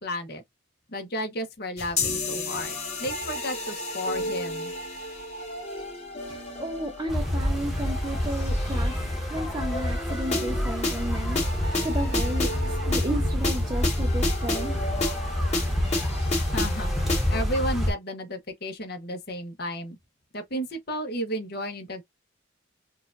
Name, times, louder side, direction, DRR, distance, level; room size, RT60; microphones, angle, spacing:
voice 1, 0.0-0.4 0.9-4.7 16.5-16.9 17.3-20.0 20.3-22.0, equal, 55° left, 1.0 m, -33 dB
sound 1, 1.8-17.4, left 2 dB, 35° left, 1.6 m, -32 dB
voice 2, 6.3-14.8, right 1 dB, 20° right, 0.6 m, -33 dB
sound 2, 7.1-17.9, left 1 dB, ahead, 1.1 m, -27 dB
4.4 x 2.4 x 2.5 m
head